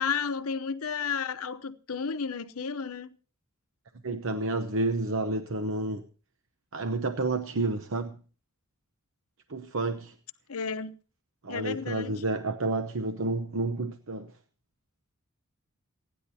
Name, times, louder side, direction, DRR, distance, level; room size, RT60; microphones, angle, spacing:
voice 1, 0.0-3.1 10.5-11.0 11.5-12.2, left 6 dB, 85° left, 0.8 m, -32 dB
voice 2, 4.0-6.1 6.7-8.2 9.5-10.1 11.4-14.3, right 2 dB, 65° right, 0.9 m, -30 dB
29.0 x 10.0 x 2.7 m
head